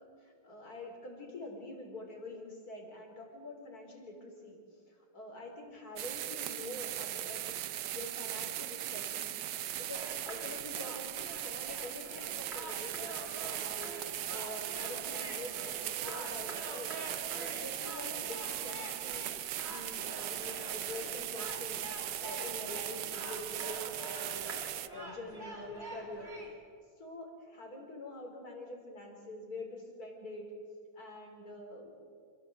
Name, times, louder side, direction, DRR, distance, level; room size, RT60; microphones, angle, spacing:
voice 1, 0.0-4.6 5.1-7.6 7.9-16.9 17.3-19.2 19.6-21.8 22.2-24.5 24.9-26.3 27.0-30.5 31.0-31.9, left 1 dB, 45° left, 0 dB, 4.6 m, -46 dB
sound 1, 6.0-24.9, right 12 dB, 65° right, 1.2 m, -39 dB
sound 2, 9.9-26.5, right 2 dB, 30° right, 3.3 m, -47 dB
sound 3, 11.7-24.0, left 2 dB, 65° left, 4.0 m, -58 dB
27.5 x 15.0 x 8.0 m, 2.2 s
omnidirectional pair, 2.2 m